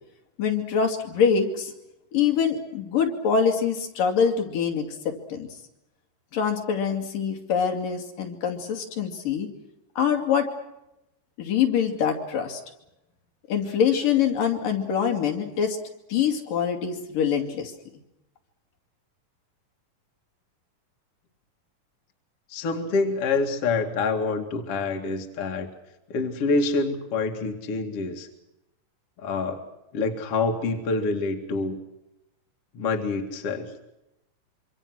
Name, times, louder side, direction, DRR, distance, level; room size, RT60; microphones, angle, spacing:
voice 1, 0.4-1.7 2.1-5.5 6.3-9.5 10.0-10.5 11.4-12.6 13.5-15.8 16.1-17.7, left 7 dB, 75° left, 4 dB, 4.4 m, -24 dB
voice 2, 22.5-25.7 26.1-28.3 29.2-29.6 29.9-31.8 32.7-33.7, left 3 dB, 45° left, 4 dB, 3.0 m, -26 dB
26.0 x 26.0 x 6.3 m, 0.90 s
omnidirectional pair, 3.9 m